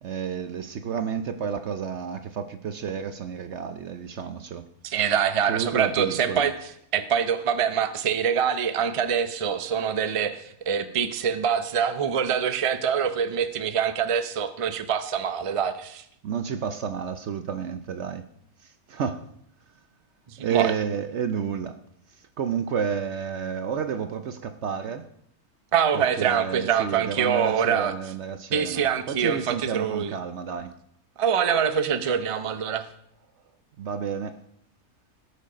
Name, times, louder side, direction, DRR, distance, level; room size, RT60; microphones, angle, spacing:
voice 1, 0.0-4.7 5.5-6.5 16.2-18.3 18.6-19.3 20.4-21.8 22.2-25.1 25.9-30.8 33.8-34.4, right 7 dB, 60° right, 0.9 m, -30 dB
voice 2, 4.8-6.6 6.9-16.0 20.3-20.7 25.7-27.9 28.5-30.1 31.2-32.9, right 7 dB, 30° right, 0.6 m, -25 dB
17.5 x 6.6 x 5.0 m
omnidirectional pair, 1.6 m